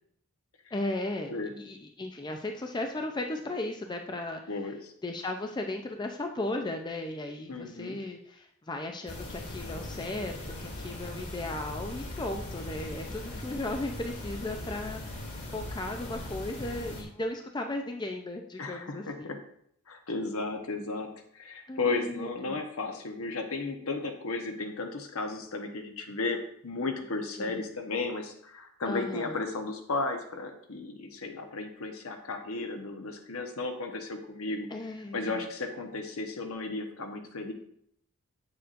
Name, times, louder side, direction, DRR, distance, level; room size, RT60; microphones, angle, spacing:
voice 1, 0.7-4.4 5.0-19.3 21.7-22.6 27.4-27.6 28.8-29.4 34.7-35.5, left 2 dB, 20° left, 4 dB, 0.4 m, -36 dB
voice 2, 4.5-4.9 7.5-8.0 18.6-19.4 19.9-34.7 35.1-37.5, left 3 dB, 65° left, 5 dB, 1.0 m, -34 dB
sound 1, 9.1-17.0, left 1 dB, 45° left, 1.9 m, -40 dB
7.7 x 6.9 x 2.5 m, 0.69 s
head